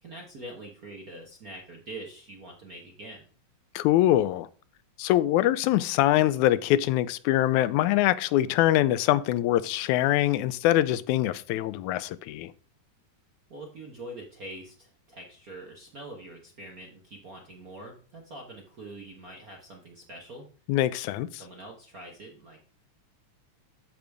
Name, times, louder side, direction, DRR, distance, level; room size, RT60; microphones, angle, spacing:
voice 1, 0.0-3.2 13.5-20.5 21.4-22.6, right 1 dB, 55° right, 1.0 m, -44 dB
voice 2, 3.8-4.5 5.0-12.5 20.7-21.4, left 14 dB, 85° left, 2.0 m, -24 dB
13.5 x 5.1 x 3.5 m
omnidirectional pair, 3.3 m